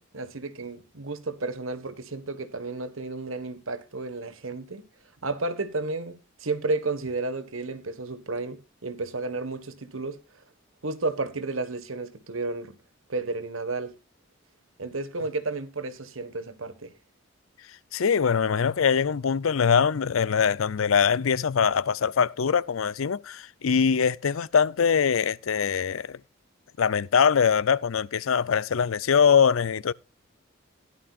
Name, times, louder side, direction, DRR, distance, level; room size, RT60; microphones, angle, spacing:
voice 1, 0.0-4.9 5.2-10.2 10.8-12.8 13.1-13.9 14.8-16.9, right 3 dB, 90° right, 1.5 m, -32 dB
voice 2, 17.9-26.2 26.8-29.9, left 6 dB, 85° left, 0.5 m, -23 dB
16.0 x 11.5 x 2.4 m
head